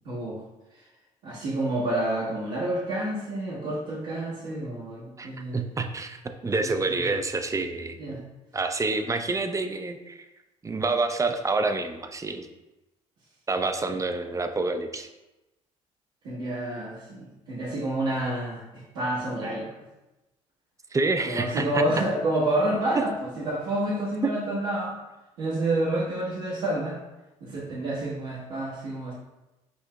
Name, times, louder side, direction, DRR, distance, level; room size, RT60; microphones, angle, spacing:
voice 1, 0.0-0.4 0.7-0.8 1.2-5.7 6.6-7.1 8.0-8.2 16.2-19.8 21.2-25.0 25.4-27.0 27.4-29.1, right 1 dB, 70° right, -11 dB, 1.3 m, -29 dB
voice 2, 5.2-8.2 8.5-10.2 10.6-12.5 13.5-15.1 20.9-21.8 24.2-24.3, right 3 dB, 20° right, 7 dB, 0.5 m, -28 dB
6.1 x 2.7 x 2.3 m, 1.0 s
hypercardioid pair, 55°, 17 cm